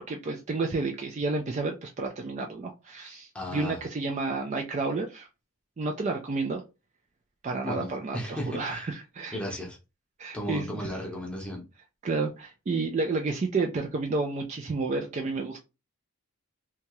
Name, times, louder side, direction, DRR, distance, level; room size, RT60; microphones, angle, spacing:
voice 1, 0.1-5.3 5.8-6.6 7.4-9.4 10.2-10.9 12.0-15.6, right 3 dB, 30° right, 0.3 m, -31 dB
voice 2, 3.3-3.8 7.6-8.9 9.3-9.8 10.3-11.6, equal, 5° left, 0.7 m, -35 dB
2.7 x 2.2 x 2.9 m
head